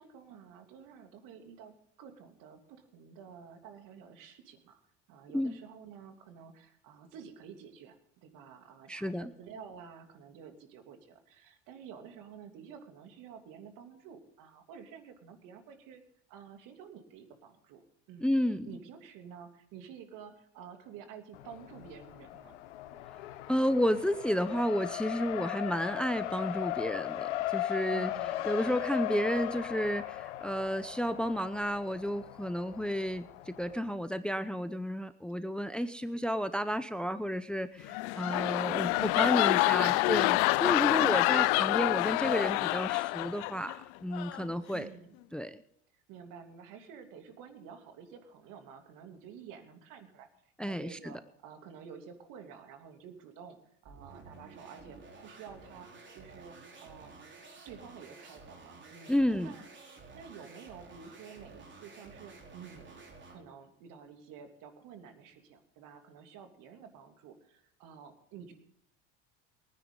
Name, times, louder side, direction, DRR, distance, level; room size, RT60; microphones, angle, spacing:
voice 1, 0.0-4.8 5.1-16.0 16.3-17.8 18.1-22.6 27.9-28.5 37.9-39.3 44.7-45.1 46.1-50.3 50.6-53.6 53.8-57.1 57.6-59.1 59.4-59.6 60.1-68.5, right 7 dB, 65° right, 6 dB, 3.0 m, -50 dB
voice 2, 8.9-9.3 18.2-18.7 23.5-28.1 28.4-44.9 45.3-45.5 50.6-51.1 59.1-59.5, equal, 5° left, 12 dB, 0.7 m, -31 dB
Race car auto racing, 21.3-34.0, left 14 dB, 85° left, 1.2 m, -38 dB
sound 1, 37.8-43.8 44.1-44.4, left 23 dB, 70° left, 0.5 m, -27 dB
sound 2, 53.8-63.5, right 3 dB, 30° right, 4.0 m, -52 dB
23.0 x 9.8 x 3.9 m, 0.72 s
supercardioid pair, 90°, 35 cm